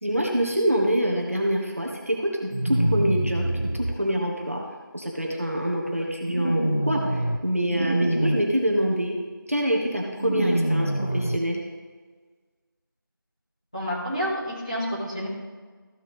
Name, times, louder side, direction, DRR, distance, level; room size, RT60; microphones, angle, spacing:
voice 1, 0.0-3.5 3.9-4.6 4.9-9.2 9.5-11.6, equal, 40° right, -1 dB, 1.1 m, -25 dB
Bomb Fall, 2.5-3.9 6.3-7.4 7.7-8.4 10.2-11.4, right 1 dB, 35° left, 0.4 m, -25 dB
voice 2, 13.7-15.3, equal, 15° left, -10 dB, 2.2 m, -29 dB
14.0 x 6.4 x 3.5 m, 1.5 s
figure-of-eight pair, 175°, 12 cm